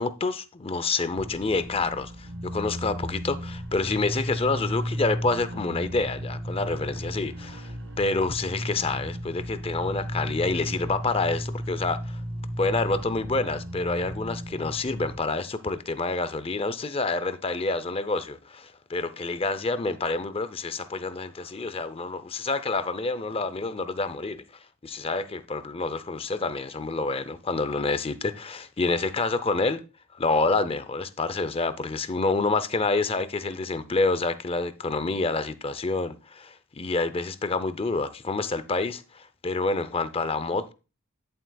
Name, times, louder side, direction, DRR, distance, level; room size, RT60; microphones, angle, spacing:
voice 1, 0.0-12.2 12.6-24.4 24.8-29.8 30.1-40.7, left 3 dB, 25° left, 0.5 m, -28 dB
sound 1, 1.2-15.2, equal, 55° right, 1.6 m, -34 dB
11.0 x 7.5 x 2.3 m
head